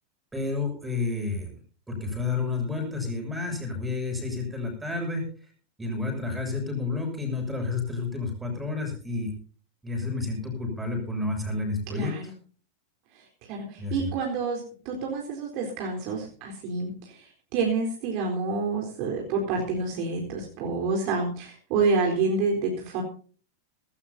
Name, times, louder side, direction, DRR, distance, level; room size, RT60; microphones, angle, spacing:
voice 1, 0.3-1.5 1.9-5.2 5.8-9.3 9.8-12.1 13.8-14.1, left 3 dB, 10° right, 3 dB, 6.5 m, -30 dB
voice 2, 11.9-12.2 13.1-23.0, right 4 dB, 45° right, 0 dB, 4.0 m, -28 dB
19.0 x 17.5 x 2.8 m, 0.41 s
figure-of-eight pair, 90°, 0 cm